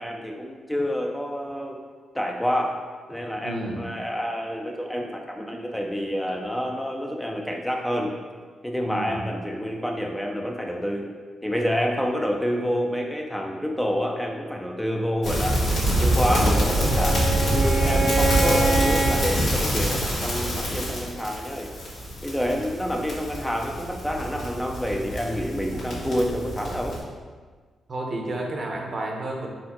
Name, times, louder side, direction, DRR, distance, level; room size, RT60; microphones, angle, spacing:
voice 1, 0.0-1.8 2.1-2.8 3.1-8.1 8.6-11.1 11.4-15.6 16.0-17.2 17.5-21.8 22.2-27.0, equal, 5° left, 1 dB, 0.4 m, -28 dB
voice 2, 3.4-3.8 8.8-9.2 27.9-29.5, right 2 dB, 45° right, 0 dB, 0.8 m, -31 dB
sound 1, 15.2-27.0, equal, 80° left, 1.4 m, -25 dB
Bowed string instrument, 16.0-19.2, right 3 dB, 90° right, 0.7 m, -27 dB
4.2 x 3.7 x 3.0 m, 1.5 s
cardioid pair, 75°, 0 cm